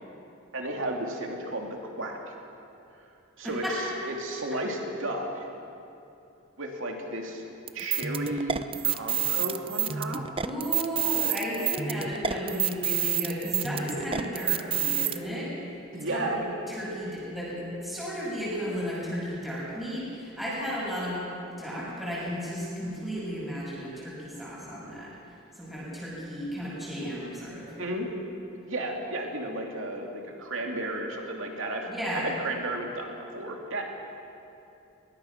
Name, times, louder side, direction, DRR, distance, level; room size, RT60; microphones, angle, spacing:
voice 1, 0.5-2.3 3.4-5.5 6.6-7.4 7.7-10.2 15.9-16.4 27.8-28.1 28.7-33.8, right 1 dB, 65° right, 1 dB, 2.9 m, -33 dB
sound 1, 7.7-15.2, right 9 dB, 25° right, 0.6 m, -28 dB
voice 2, 10.4-15.5 16.1-16.3 16.8-20.0 20.4-21.2 21.6-25.1 25.6-27.7 31.9-32.2, equal, ahead, -8 dB, 6.5 m, -34 dB
22.0 x 20.5 x 6.0 m, 2.8 s
head